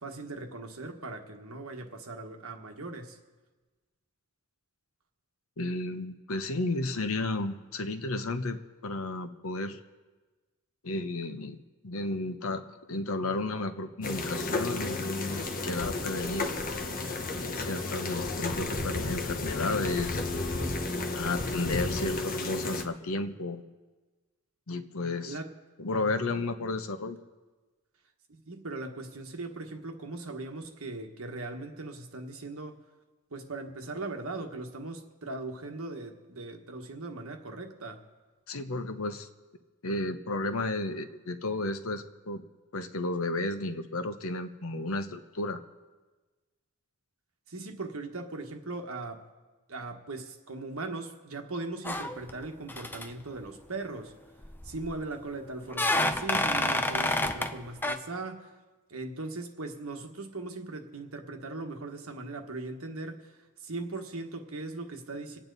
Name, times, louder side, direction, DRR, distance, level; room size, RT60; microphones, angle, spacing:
voice 1, 0.0-3.2 25.2-25.5 28.3-32.8 33.3-38.0 47.5-49.2 49.7-54.1 54.6-58.6 58.9-65.4, right 2 dB, 75° right, 4 dB, 1.4 m, -39 dB
voice 2, 5.6-9.8 10.8-11.6 11.8-16.5 17.4-20.2 21.1-23.6 24.7-25.4 25.8-27.2 38.5-39.3 39.8-42.4 42.7-45.6, left 2 dB, 70° left, 8 dB, 1.0 m, -33 dB
sound 1, 14.0-22.8, left 2 dB, 40° left, 1.1 m, -32 dB
Wood Door Sound, 51.8-52.4 52.7-53.1 54.4-55.0 55.7-57.5 57.8-58.0, left 1 dB, 10° left, 0.6 m, -28 dB
26.5 x 9.0 x 4.0 m, 1.3 s
head